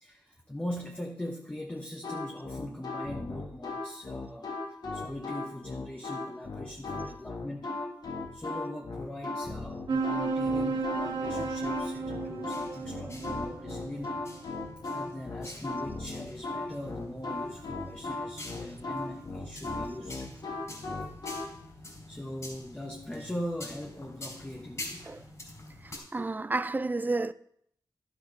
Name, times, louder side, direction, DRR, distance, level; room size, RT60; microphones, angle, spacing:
voice 1, 0.0-4.5 4.9-7.8 8.3-14.2 14.9-20.3 21.8-25.1, left 1 dB, 15° left, 1.1 m, -41 dB
sound 1, 2.0-21.5, left 3 dB, 65° left, 1.9 m, -37 dB
sound 2, 9.9-14.7, right 4 dB, 85° right, 1.9 m, -33 dB
sound 3, 11.0-26.0, left 2 dB, 40° left, 3.9 m, -47 dB
voice 2, 26.1-27.3, right 3 dB, 25° right, 0.4 m, -30 dB
11.5 x 6.8 x 5.3 m
wide cardioid pair, 80°, 8 cm